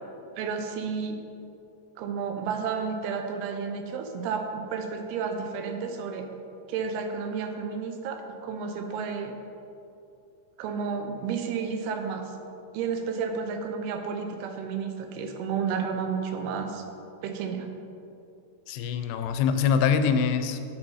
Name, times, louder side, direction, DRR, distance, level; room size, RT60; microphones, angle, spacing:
voice 1, 0.4-1.2 2.0-6.3 6.7-9.3 10.6-12.3 12.7-16.8 17.2-17.7, right 6 dB, 90° right, 5 dB, 2.8 m, -31 dB
voice 2, 18.7-20.6, left 7 dB, 85° left, 9 dB, 2.6 m, -24 dB
8.8 x 6.0 x 5.6 m, 2.7 s
omnidirectional pair, 4.5 m